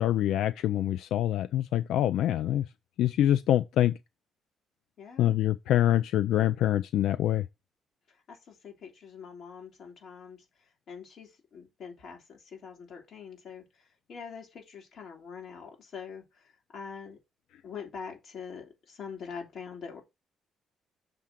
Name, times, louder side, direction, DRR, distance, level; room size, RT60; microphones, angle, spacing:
voice 1, 0.0-2.6 3.0-4.0 5.2-7.4, left 12 dB, 85° left, 0.3 m, -25 dB
voice 2, 5.0-5.4 8.3-10.4 10.9-17.2 17.6-20.0, left 6 dB, 65° left, 2.7 m, -44 dB
6.5 x 3.7 x 5.8 m
cardioid pair, 90°, 0 cm